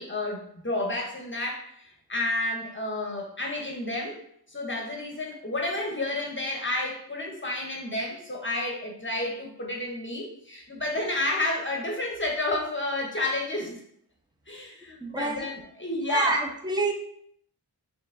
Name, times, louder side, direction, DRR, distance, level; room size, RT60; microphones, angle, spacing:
voice 1, 0.0-4.2 4.5-13.8 14.5-16.4, left 2 dB, 30° left, 0 dB, 0.7 m, -31 dB
voice 2, 15.0-15.5 16.1-16.9, right 3 dB, 10° right, 3 dB, 0.5 m, -27 dB
4.4 x 2.9 x 2.5 m, 0.68 s
wide cardioid pair, 90°, 40 cm